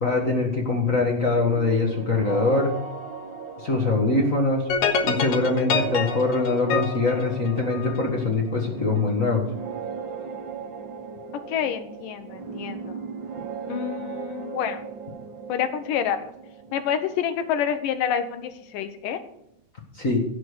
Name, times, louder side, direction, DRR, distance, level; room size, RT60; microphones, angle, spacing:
voice 1, 0.0-2.7 3.6-4.7 5.0-9.4 19.9-20.2, left 3 dB, 40° left, 1 dB, 1.2 m, -23 dB
sound 1, 1.2-18.9, right 5 dB, 60° right, 1.2 m, -37 dB
sound 2, 4.7-8.1, left 5 dB, 65° left, 2.6 m, -26 dB
voice 2, 11.5-13.0 13.7-14.8 15.5-16.3 16.7-19.2, left 8 dB, 80° left, 9 dB, 2.6 m, -28 dB
16.5 x 5.9 x 6.5 m, 0.76 s
omnidirectional pair, 3.8 m